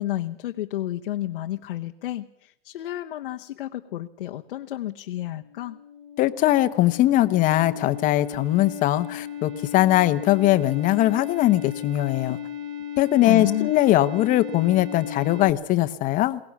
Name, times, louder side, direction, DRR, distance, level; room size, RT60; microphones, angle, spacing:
voice 1, 0.0-5.8 13.2-13.7, left 14 dB, 65° left, 4 dB, 1.0 m, -31 dB
sound 1, 5.3-15.5, left 9 dB, 5° right, 2.5 m, -36 dB
voice 2, 6.2-12.4 13.0-16.4, left 15 dB, 25° left, 11 dB, 1.0 m, -21 dB
22.0 x 17.5 x 7.2 m, 0.75 s
hypercardioid pair, 135°, 31 cm